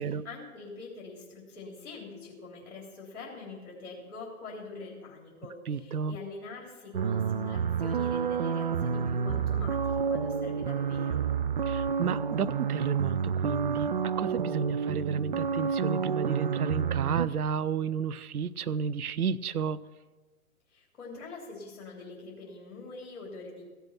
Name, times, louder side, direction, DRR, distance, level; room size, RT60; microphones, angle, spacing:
voice 1, 0.0-11.2 20.7-23.7, left 3 dB, 45° left, -2 dB, 3.5 m, -44 dB
voice 2, 5.7-6.2 11.7-19.8, right 6 dB, 80° right, 16 dB, 0.6 m, -32 dB
sound 1, 6.9-17.3, right 6 dB, 35° right, 0.4 m, -29 dB
15.0 x 8.1 x 5.9 m, 1.3 s
figure-of-eight pair, 125°, 44 cm